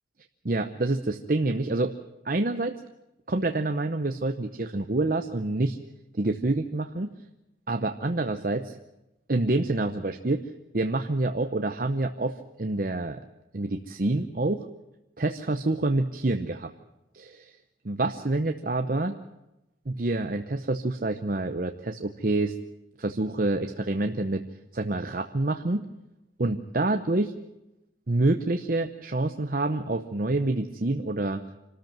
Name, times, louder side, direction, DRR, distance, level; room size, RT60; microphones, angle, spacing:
voice 1, 0.4-1.9 2.2-2.7 3.3-5.8 6.1-7.1 7.7-8.8 9.3-10.4 10.7-13.2 13.5-14.7 15.2-16.7 17.1-17.5 17.8-19.2 19.9-22.6 23.0-24.4 24.7-25.9 26.4-27.3 28.1-31.4, right 2 dB, 50° right, 6 dB, 0.8 m, -27 dB
26.0 x 13.5 x 8.9 m, 0.95 s
head